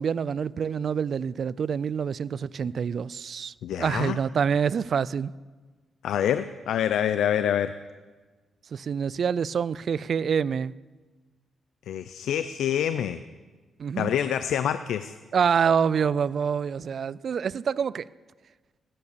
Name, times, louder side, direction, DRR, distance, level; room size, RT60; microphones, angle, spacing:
voice 1, 0.0-5.3 8.7-10.7 13.8-14.1 15.3-18.1, right 7 dB, 55° right, 0.4 m, -26 dB
voice 2, 3.6-4.2 6.0-7.7 11.9-13.2 14.0-15.2, left 9 dB, 85° left, 0.5 m, -26 dB
17.5 x 10.5 x 6.9 m
cardioid pair, 100°, 0 cm